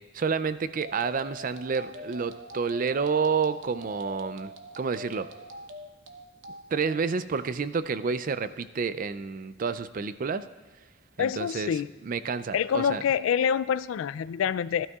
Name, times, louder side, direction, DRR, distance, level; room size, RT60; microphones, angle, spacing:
voice 1, 0.1-5.3 6.7-10.4 11.2-11.7 12.0-13.0, right 5 dB, 45° right, 13 dB, 0.4 m, -29 dB
sound 1, 0.7-7.0, equal, 65° right, 0.9 m, -44 dB
voice 2, 11.2-11.9 12.5-14.9, left 7 dB, 90° left, 16 dB, 0.3 m, -26 dB
16.0 x 12.5 x 2.4 m, 1.2 s
head